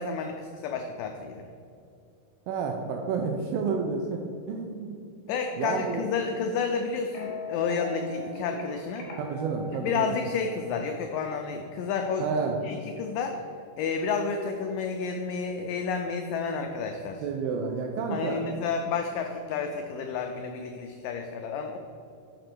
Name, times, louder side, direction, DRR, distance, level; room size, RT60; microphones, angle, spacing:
voice 1, 0.0-1.4 5.3-9.1 9.8-12.3 12.6-13.4 13.8-17.2 18.1-21.8, left 5 dB, 85° left, 4 dB, 1.9 m, -31 dB
voice 2, 2.5-4.2 4.5-5.1 5.6-6.1 9.2-10.1 12.2-12.6 17.2-18.4, right 5 dB, 80° right, 2 dB, 2.2 m, -30 dB
sound 1, 7.1-11.1, left 3 dB, 60° left, 2.6 m, -40 dB
6.7 x 5.2 x 6.0 m, 2.5 s
omnidirectional pair, 4.4 m